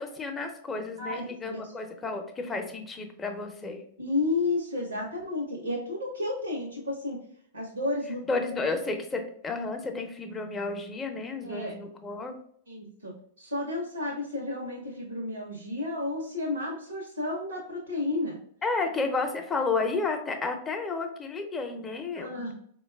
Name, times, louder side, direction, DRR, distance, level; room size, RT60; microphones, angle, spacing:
voice 1, 0.0-3.8 8.3-12.3 18.6-22.5, left 3 dB, 20° left, 5 dB, 0.6 m, -32 dB
voice 2, 1.0-1.7 4.0-7.2 7.5-8.2 11.4-11.7 12.7-18.4 19.0-19.1 22.2-22.5, left 2 dB, 85° right, -2 dB, 0.8 m, -32 dB
4.3 x 2.2 x 2.2 m, 0.63 s
hypercardioid pair, 100°, 0 cm